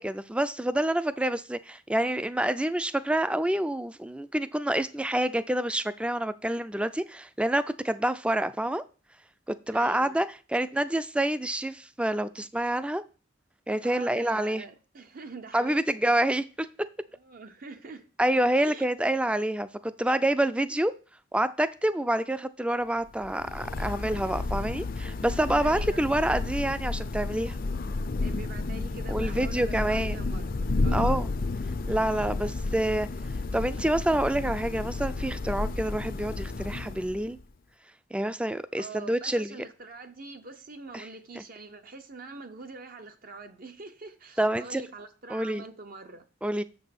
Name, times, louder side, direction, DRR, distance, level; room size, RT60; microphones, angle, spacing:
voice 1, 0.0-8.8 9.5-13.0 13.7-14.6 15.5-16.9 18.2-20.9 21.3-27.6 29.1-30.2 30.9-31.3 31.9-33.1 33.5-37.4 38.1-39.5 40.9-41.0 44.4-44.8 45.3-45.6 46.4-46.6, right 1 dB, 5° right, 13 dB, 0.4 m, -27 dB
voice 2, 9.7-10.3 13.8-16.2 17.2-18.1 18.6-18.8 25.6-26.0 28.2-30.5 30.8-31.2 38.8-46.3, right 3 dB, 50° right, 7 dB, 0.7 m, -44 dB
Thunder / Rain, 23.1-37.4, left 3 dB, 50° left, 0.5 m, -32 dB
7.1 x 5.4 x 5.9 m, 0.36 s
head